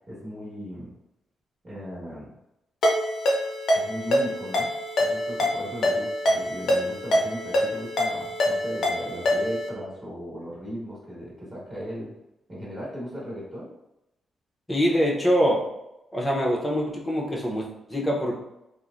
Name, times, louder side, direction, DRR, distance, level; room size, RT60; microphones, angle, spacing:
voice 1, 0.1-0.9 1.6-2.3 3.7-4.7 5.0-12.1 12.5-13.7, equal, 25° right, -8 dB, 1.2 m, -37 dB
Ringtone, 2.8-9.7, left 1 dB, 65° left, 0.5 m, -25 dB
voice 2, 14.7-15.6 16.1-18.3, equal, 15° left, -2 dB, 0.7 m, -24 dB
3.1 x 2.0 x 2.4 m, 0.87 s
cardioid pair, 85°, 0 cm